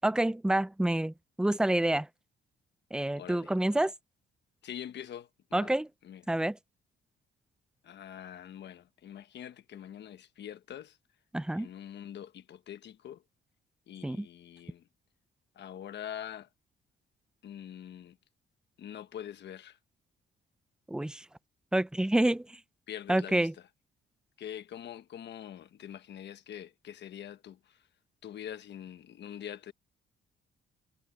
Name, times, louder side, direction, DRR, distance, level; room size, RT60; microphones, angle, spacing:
voice 1, 0.0-2.1 2.9-3.9 5.5-5.9 6.3-6.6 11.3-11.7 14.0-14.3 20.9-21.3 21.7-22.6 23.1-23.5, right 1 dB, 5° right, 0.5 m, -28 dB
voice 2, 3.1-3.5 4.6-5.7 6.0-6.2 7.8-11.0 11.5-13.2 13.9-14.9 15.5-16.5 17.4-18.2 18.8-19.8 22.9-23.5 24.4-27.8 28.2-29.7, left 10 dB, 60° left, 1.2 m, -44 dB
cardioid pair, 150°, 21 cm